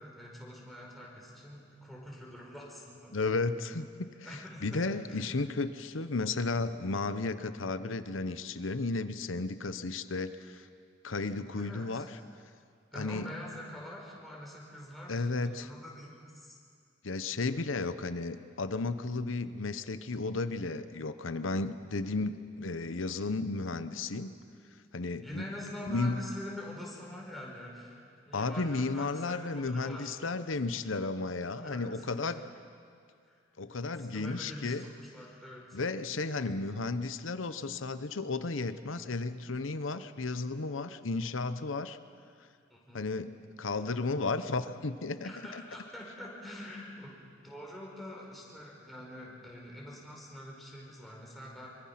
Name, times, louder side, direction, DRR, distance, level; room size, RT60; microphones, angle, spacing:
voice 1, 0.0-3.3 4.2-5.3 11.6-12.1 12.9-16.6 25.2-30.1 31.6-32.5 33.2-33.4 33.9-35.8 42.7-43.1 45.2-51.7, left 1 dB, ahead, -4 dB, 4.9 m, -45 dB
voice 2, 3.1-4.1 4.6-10.7 11.0-12.1 13.0-13.2 15.1-15.7 17.0-24.3 24.9-25.4 25.9-26.2 28.3-32.4 33.6-34.8 35.7-42.0 42.9-43.3 43.6-45.3, left 3 dB, 85° left, 12 dB, 0.9 m, -33 dB
25.0 x 24.0 x 5.9 m, 2.3 s
head